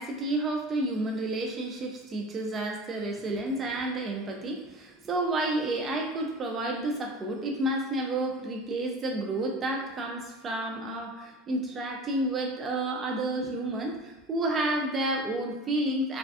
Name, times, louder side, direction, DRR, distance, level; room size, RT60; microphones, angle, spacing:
voice 1, 0.0-16.2, right 2 dB, 20° right, 1 dB, 0.4 m, -30 dB
2.4 x 2.3 x 2.4 m, 1.1 s
supercardioid pair, 160°, 0 cm